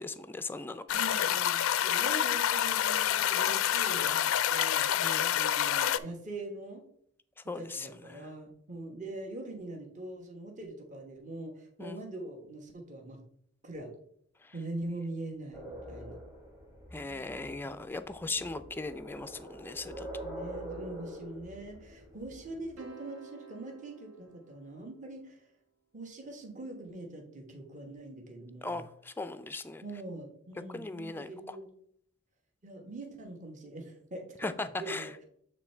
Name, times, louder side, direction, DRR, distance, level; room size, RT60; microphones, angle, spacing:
voice 1, 0.0-0.8 5.0-5.5 7.5-8.3 11.8-12.0 14.4-14.5 16.9-20.1 28.6-29.8 30.7-31.6 34.4-35.1, left 3 dB, 10° left, 11 dB, 0.3 m, -38 dB
sound 1, 0.9-6.0, left 10 dB, 80° left, 0.4 m, -28 dB
voice 2, 0.9-4.9 5.3-6.8 7.6-13.2 13.6-13.9 14.5-16.2 17.4-17.9 18.4-18.7 20.2-25.5 25.9-28.8 29.8-31.7 32.6-35.2, right 2 dB, 40° right, 1 dB, 1.2 m, -43 dB
sound 2, 15.5-22.8, right 1 dB, 15° right, 1.1 m, -45 dB
sound 3, 22.8-25.2, right 5 dB, 75° right, 1.0 m, -52 dB
8.3 x 3.2 x 4.4 m, 0.69 s
head